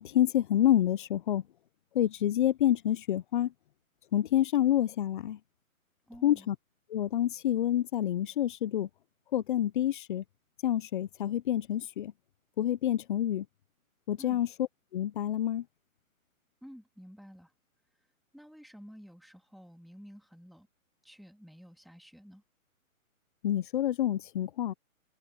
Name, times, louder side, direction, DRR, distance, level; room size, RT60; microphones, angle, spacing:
voice 1, 0.0-1.4 1.9-3.5 4.1-5.4 6.2-6.6 6.9-8.9 9.3-10.2 10.6-12.1 12.6-13.5 14.1-14.5 14.9-15.6 23.4-24.7, left 11 dB, 35° left, 1.0 m, -28 dB
voice 2, 6.1-6.5 14.2-14.4 16.6-17.5 18.3-20.7 21.0-22.4, equal, ahead, 2.8 m, -51 dB
hypercardioid pair, 145°, 42 cm